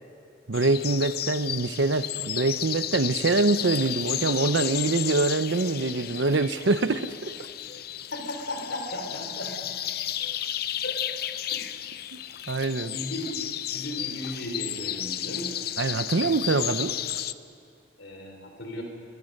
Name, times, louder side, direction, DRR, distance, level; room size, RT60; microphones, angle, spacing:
sound 1, 0.5-17.3, left 11 dB, 55° left, 0.6 m, -33 dB
voice 1, 0.5-7.3 12.5-12.9 15.8-16.9, right 3 dB, 80° right, 12 dB, 0.8 m, -24 dB
voice 2, 8.1-9.5 10.8-11.0 11.5-11.9 12.9-13.4 13.7-15.5 18.0-18.8, left 1 dB, 80° left, 3 dB, 3.6 m, -35 dB
29.5 x 22.5 x 6.6 m, 2.4 s
head